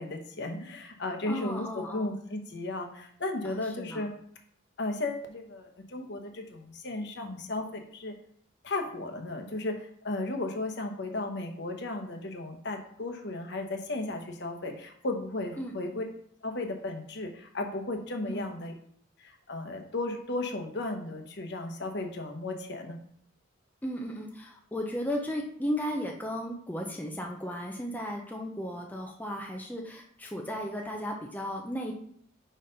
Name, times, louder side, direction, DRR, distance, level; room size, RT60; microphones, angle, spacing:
voice 1, 0.0-4.1 4.8-8.1 8.6-16.0 16.4-18.7 19.2-23.0, left 2 dB, 60° left, 4 dB, 1.0 m, -35 dB
voice 2, 1.3-2.2 3.4-4.1 15.6-15.8 18.3-18.4 23.8-31.9, equal, 10° left, 0 dB, 0.6 m, -35 dB
5.1 x 4.3 x 5.1 m, 0.64 s
head